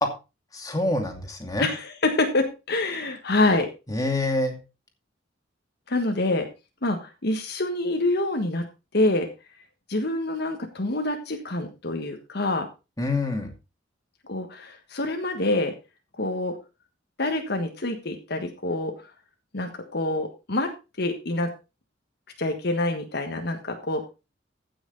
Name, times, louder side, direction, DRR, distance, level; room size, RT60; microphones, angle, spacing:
voice 1, 0.5-1.7 3.9-4.6 13.0-13.5, left 2 dB, 20° left, 3 dB, 2.4 m, -26 dB
voice 2, 1.6-3.7 5.9-6.5 6.8-8.7 8.9-9.3 9.9-12.7 14.2-15.8 16.2-16.6 17.2-18.9 19.5-20.7 21.0-21.5 22.4-24.0, left 2 dB, 60° left, 5 dB, 1.5 m, -26 dB
15.5 x 6.2 x 3.9 m, 0.28 s
head